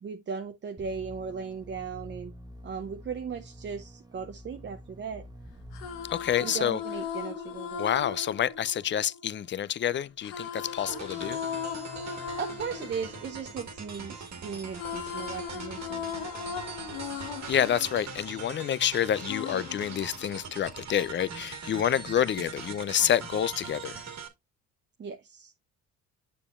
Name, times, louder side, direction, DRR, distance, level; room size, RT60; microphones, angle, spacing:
voice 1, 0.0-2.3 2.6-5.3 6.4-7.8 12.4-16.1 25.0-25.5, right 6 dB, 30° right, 0.6 m, -37 dB
sound 1, 0.8-6.3, equal, 10° right, 0.9 m, -47 dB
sound 2, 5.5-9.6 10.2-14.3 14.5-18.8 19.3-20.7, left 7 dB, 80° left, 1.2 m, -38 dB
voice 2, 6.1-6.8 7.8-11.4 17.5-24.0, left 10 dB, 30° left, 0.4 m, -28 dB
sound 3, 10.6-24.3, right 5 dB, 45° right, 1.6 m, -42 dB
6.9 x 6.7 x 2.4 m
supercardioid pair, 75°, 37 cm